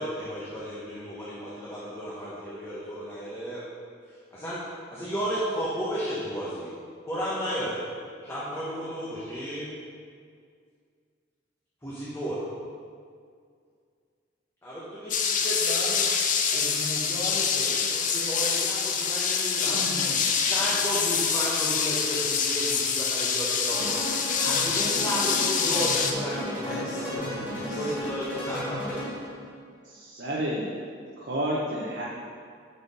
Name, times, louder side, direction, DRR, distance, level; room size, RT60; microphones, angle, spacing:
voice 1, 0.0-3.6 4.3-4.6 4.9-6.7 7.1-7.8 8.2-9.7 11.8-12.4 14.6-16.1 16.5-19.8 20.4-24.0 24.4-27.3 27.8-29.0, equal, 15° left, -9 dB, 0.9 m, -33 dB
sound 1, 15.1-26.1, left 6 dB, 40° left, 0.4 m, -26 dB
voice 2, 19.3-20.8 26.6-28.6, left 1 dB, 55° left, -3 dB, 1.1 m, -40 dB
sound 2, 23.7-29.4, left 1 dB, 10° right, 1.4 m, -34 dB
voice 3, 29.8-30.7 31.2-32.0, equal, 55° right, -5 dB, 0.7 m, -30 dB
5.3 x 4.2 x 5.2 m, 2.1 s
head